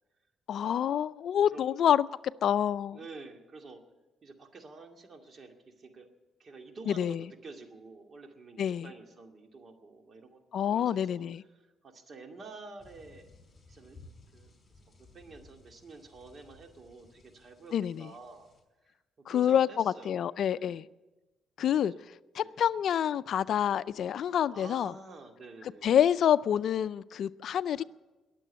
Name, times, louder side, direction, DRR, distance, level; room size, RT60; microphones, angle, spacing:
voice 1, 0.5-2.1 2.4-3.0 6.9-7.2 8.6-8.9 10.5-11.4 17.7-18.1 19.3-20.9 21.6-21.9 22.3-24.9 25.8-27.8, left 9 dB, 65° left, 16 dB, 0.4 m, -27 dB
voice 2, 2.9-3.8 4.2-6.1 6.4-10.4 10.7-11.2 11.5-13.3 13.7-14.0 14.3-14.5 14.9-18.5 19.3-20.2 20.5-20.8 21.7-22.0 22.4-22.6 24.5-25.9 27.8-27.9, right 3 dB, 45° right, 4 dB, 2.2 m, -49 dB
sound 1, 12.8-18.6, left 3 dB, 20° left, 4.7 m, -58 dB
21.5 x 7.7 x 8.2 m, 1.1 s
cardioid pair, 90°, 0 cm